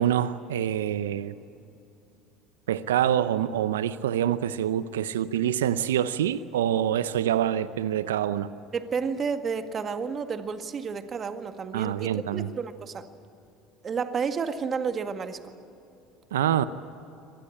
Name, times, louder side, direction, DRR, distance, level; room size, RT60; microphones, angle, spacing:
voice 1, 0.0-1.3 2.7-8.5 11.7-12.5 16.3-16.6, right 10 dB, 80° right, 15 dB, 0.7 m, -26 dB
voice 2, 8.7-13.1 13.8-15.4, right 5 dB, 35° right, 8 dB, 1.8 m, -31 dB
25.0 x 19.5 x 8.6 m, 2.8 s
hypercardioid pair, 65°, 0 cm